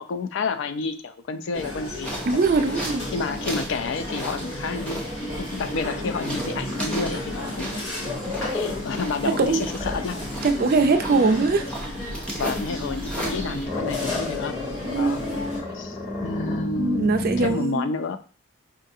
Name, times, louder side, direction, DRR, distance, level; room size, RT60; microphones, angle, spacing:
voice 1, 0.0-2.7 3.1-5.0 5.4-7.7 8.2-10.2 12.4-14.6 14.9-15.2 15.7-17.1 17.4-18.2, left 4 dB, 60° left, 10 dB, 0.3 m, -30 dB
sound 1, 1.5-15.6, left 1 dB, 80° left, 1.0 m, -33 dB
sound 2, 2.0-13.7, right 1 dB, 5° left, 0.7 m, -36 dB
voice 2, 2.3-3.0 9.4-9.7 10.4-11.7 14.9-15.3 16.8-17.9, right 4 dB, 45° right, 7 dB, 0.4 m, -22 dB
Growling, 3.1-8.9 9.4-11.7 13.1-17.6, left 2 dB, 45° left, 1.2 m, -34 dB
4.6 x 2.5 x 2.6 m, 0.38 s
head